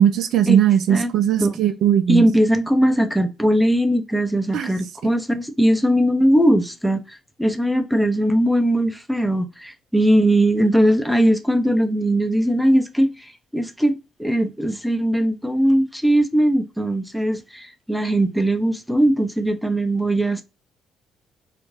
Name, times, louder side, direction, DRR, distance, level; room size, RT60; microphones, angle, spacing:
voice 1, 0.0-2.2 4.5-4.7, right 9 dB, 60° right, 0.4 m, -18 dB
voice 2, 2.1-20.4, right 1 dB, ahead, 0.5 m, -20 dB
2.5 x 2.1 x 3.1 m
hypercardioid pair, 50°, 0 cm